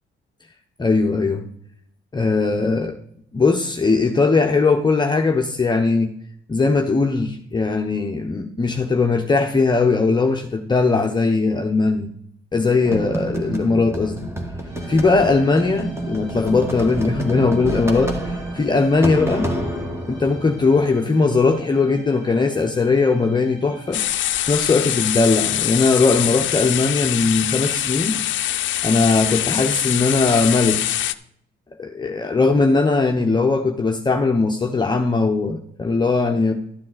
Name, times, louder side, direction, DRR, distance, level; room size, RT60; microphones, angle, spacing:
voice 1, 0.8-1.4 2.1-2.9 3.3-6.1 6.5-12.1 12.5-14.3 14.9-19.5 20.1-24.0 24.5-28.1 28.8-30.8 31.8-36.5, left 3 dB, 20° left, 2 dB, 0.8 m, -19 dB
sound 1, 12.8-20.9, right 1 dB, 15° right, 1.5 m, -29 dB
sound 2, 14.7-25.8, right 2 dB, 65° right, 3.8 m, -48 dB
sound 3, 23.9-31.1, left 13 dB, 70° left, 0.5 m, -23 dB
12.0 x 7.4 x 4.0 m, 0.71 s
cardioid pair, 90°, 20 cm